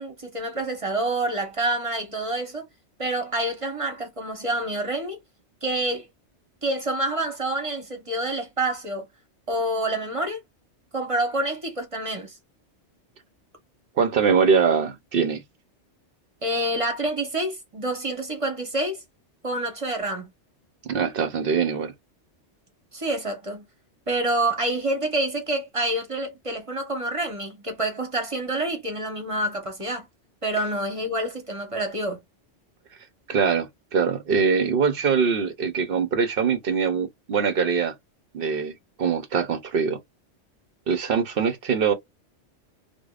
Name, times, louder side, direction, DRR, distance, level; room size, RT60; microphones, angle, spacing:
voice 1, 0.0-2.7 3.0-5.2 5.6-6.1 6.6-9.1 9.5-10.4 10.9-12.4 16.4-19.0 19.4-20.3 22.9-23.6 24.1-30.1 30.4-32.2, right 1 dB, 30° right, 1.1 m, -27 dB
voice 2, 14.0-15.4 20.8-21.9 33.3-37.9 38.3-38.7 39.0-40.0 40.9-41.9, right 6 dB, 60° right, 0.8 m, -23 dB
4.7 x 2.3 x 2.3 m
omnidirectional pair, 1.2 m